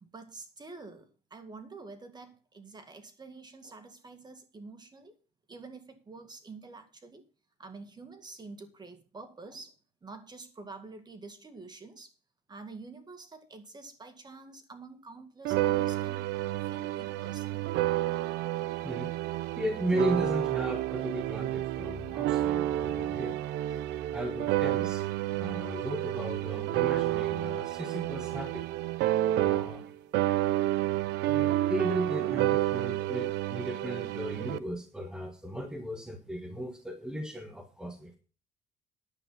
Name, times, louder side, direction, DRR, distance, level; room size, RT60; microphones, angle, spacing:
voice 1, 0.0-5.2 5.5-7.2 7.6-9.8 10.0-12.1 12.5-16.3 16.6-17.7, right 3 dB, 25° right, 8 dB, 2.0 m, -48 dB
sound 1, 15.4-29.9 30.1-34.6, right 15 dB, 85° right, 0.6 m, -30 dB
voice 2, 19.6-23.4 24.1-25.0 25.4-28.7 29.4-29.9 31.2-38.2, equal, 5° right, 5 dB, 1.3 m, -36 dB
10.0 x 7.7 x 5.7 m, 0.36 s
cardioid pair, 110°, 17 cm